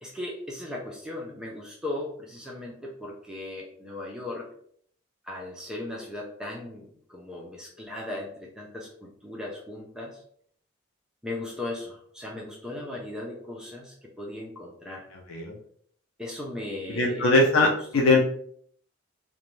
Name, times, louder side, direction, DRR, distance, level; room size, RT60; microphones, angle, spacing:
voice 1, 0.0-4.5 5.3-10.2 11.2-15.0 16.2-17.3 17.6-18.0, left 2 dB, 5° right, -2 dB, 0.4 m, -37 dB
voice 2, 16.9-18.2, left 2 dB, 90° left, 1 dB, 0.4 m, -21 dB
2.5 x 2.2 x 3.0 m, 0.63 s
head